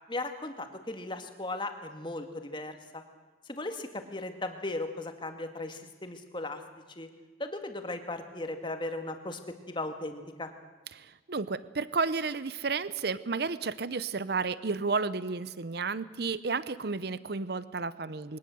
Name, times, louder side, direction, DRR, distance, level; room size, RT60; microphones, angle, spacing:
voice 1, 0.1-3.0 3.5-6.6 7.0-7.1 7.4-9.4 9.7-10.5, left 2 dB, 25° left, 6 dB, 2.0 m, -37 dB
voice 2, 10.9-18.4, right 4 dB, 60° right, 16 dB, 0.7 m, -32 dB
22.5 x 18.5 x 7.8 m, 1.3 s
head